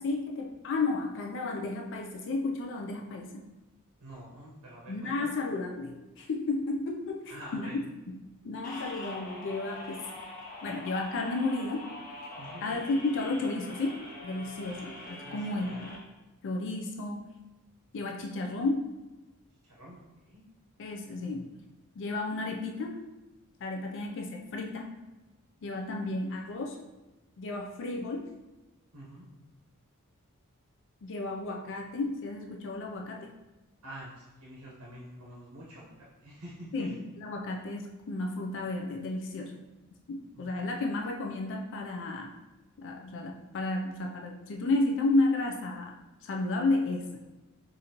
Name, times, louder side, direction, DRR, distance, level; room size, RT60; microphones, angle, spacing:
voice 1, 0.0-3.5 4.9-7.8 8.1-8.2 8.4-10.1 10.6-11.9 12.6-15.7 16.4-17.3 17.9-18.9 20.8-21.5 22.0-23.0 23.6-24.9 25.6-26.8 27.4-28.3 31.0-33.3 36.7-39.5 40.1-42.3 42.8-45.9 46.2-47.0, left 2 dB, 55° left, 1 dB, 0.4 m, -32 dB
voice 2, 4.0-5.3 7.3-7.7 12.4-12.8 15.2-15.8 19.6-20.4 26.0-26.1 28.9-29.2 33.8-36.9 40.3-40.5, equal, 75° right, -5 dB, 1.0 m, -47 dB
sound 1, 8.6-16.0, left 2 dB, 40° left, 1.2 m, -44 dB
4.9 x 2.7 x 2.9 m, 1.1 s
head